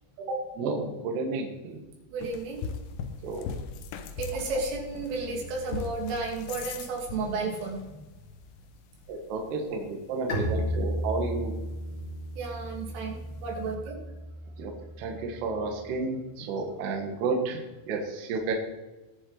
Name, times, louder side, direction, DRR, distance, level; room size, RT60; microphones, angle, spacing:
voice 1, 0.5-1.8 3.2-3.5 9.1-11.5 14.6-14.7 15.0-18.5, right 3 dB, 65° right, 2 dB, 3.3 m, -31 dB
voice 2, 2.1-2.6 4.2-7.8 12.4-14.0, right 3 dB, 85° right, 0 dB, 5.0 m, -32 dB
sound 1, 2.2-13.8, left 5 dB, 80° left, 3.2 m, -42 dB
Bowed string instrument, 10.3-15.9, equal, 30° left, 3.9 m, -34 dB
21.0 x 7.4 x 4.0 m, 1.1 s
omnidirectional pair, 5.6 m